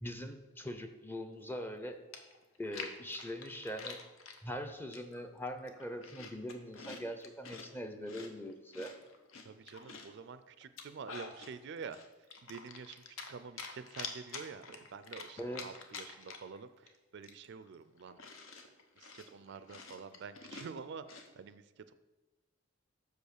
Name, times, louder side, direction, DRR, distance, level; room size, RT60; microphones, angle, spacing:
voice 1, 0.0-2.0 2.6-4.0 4.4-8.9 15.4-15.7, equal, 10° left, 7 dB, 0.6 m, -42 dB
Chewing mastication, 1.7-1.8 2.1-4.4 4.9-5.3 5.6-7.7 8.1-10.2 10.6-11.5 11.9-13.3 13.6-16.6 16.9-17.0 17.2-21.3, left 4 dB, 75° left, 0.9 m, -47 dB
voice 2, 9.4-12.0 12.4-18.2 19.0-21.9, right 5 dB, 55° right, 13 dB, 0.4 m, -48 dB
6.4 x 5.4 x 6.5 m, 1.1 s
head